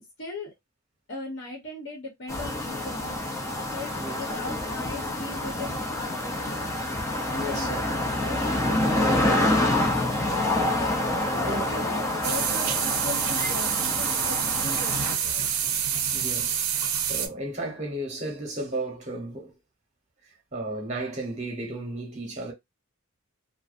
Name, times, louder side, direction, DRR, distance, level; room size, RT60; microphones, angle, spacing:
voice 1, 0.2-0.5 1.1-3.2 3.7-6.8 7.3-9.7 11.3-15.5, left 2 dB, 60° left, 0.9 m, -39 dB
sound 1, 2.3-15.1, left 1 dB, 15° left, 0.5 m, -27 dB
voice 2, 7.3-7.8 10.5-10.8 11.5-11.7 16.1-19.6 20.5-22.5, right 1 dB, 35° right, 0.9 m, -34 dB
sound 2, 12.2-17.3, right 8 dB, 85° right, 0.5 m, -27 dB
2.6 x 2.1 x 2.4 m
head